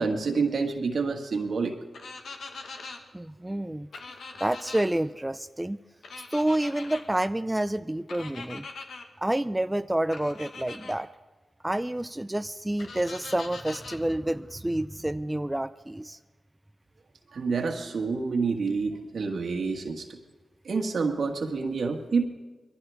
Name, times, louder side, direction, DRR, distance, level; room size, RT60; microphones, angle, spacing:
voice 1, 0.0-1.8 17.3-20.2 20.7-22.3, right 4 dB, 70° right, 3 dB, 1.8 m, -28 dB
sound 1, 1.9-3.0 3.9-4.9 6.0-7.0 8.1-9.0 10.1-11.0 12.8-14.0, left 4 dB, 80° left, 1.4 m, -42 dB
voice 2, 3.1-3.9 4.4-5.8 6.3-8.7 9.2-11.1 11.6-16.2, right 1 dB, 15° right, 11 dB, 0.4 m, -29 dB
21.5 x 15.0 x 3.5 m, 1.3 s
cardioid pair, 45°, 0 cm